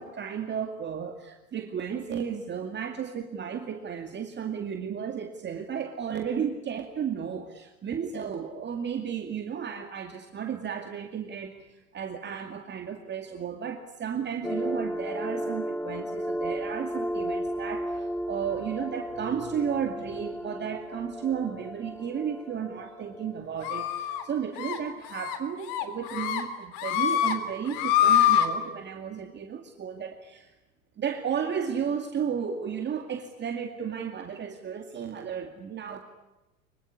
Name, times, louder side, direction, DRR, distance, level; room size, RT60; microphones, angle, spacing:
voice 1, 0.0-30.5 31.0-36.0, right 7 dB, 25° right, 4 dB, 2.3 m, -33 dB
sound 1, 14.4-24.2, equal, 5° left, 1.0 m, -34 dB
sound 2, 23.6-24.2 24.6-24.8 25.1-25.4 25.7-26.4 26.7-27.3 27.7-28.5, left 10 dB, 50° left, 3.4 m, -24 dB
25.0 x 23.0 x 9.9 m, 1.0 s
hypercardioid pair, 95°, 43 cm